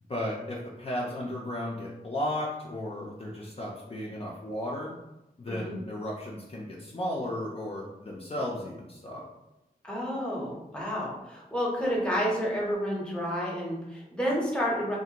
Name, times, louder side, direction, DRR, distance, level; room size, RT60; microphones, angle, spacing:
voice 1, 0.1-5.0 5.4-9.2, left 1 dB, 35° left, -4 dB, 0.4 m, -34 dB
voice 2, 5.5-5.8 9.8-15.0, equal, 5° left, -4 dB, 0.7 m, -30 dB
2.4 x 2.1 x 2.8 m, 0.93 s
wide cardioid pair, 80°, 16 cm